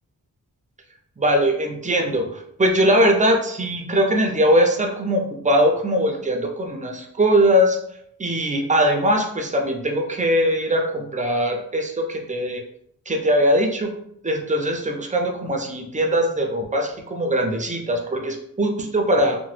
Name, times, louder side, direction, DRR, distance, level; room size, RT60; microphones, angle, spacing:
voice 1, 1.2-7.8 8.2-12.6 13.1-13.9 14.2-19.4, equal, 20° right, 3 dB, 0.4 m, -21 dB
2.9 x 2.1 x 3.1 m, 0.72 s
wide cardioid pair, 130°, 36 cm